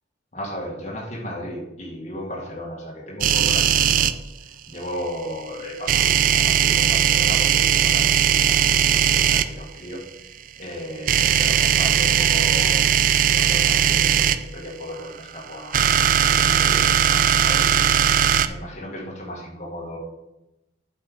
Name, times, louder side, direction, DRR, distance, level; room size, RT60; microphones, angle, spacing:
voice 1, 0.3-4.1 4.4-12.9 13.3-20.0, equal, 40° left, -3 dB, 1.8 m, -35 dB
sound 1, 3.2-4.1 5.9-9.5 11.1-14.4 15.5-18.5, right 9 dB, 45° right, 0.3 m, -18 dB
7.7 x 5.4 x 5.0 m, 0.92 s
head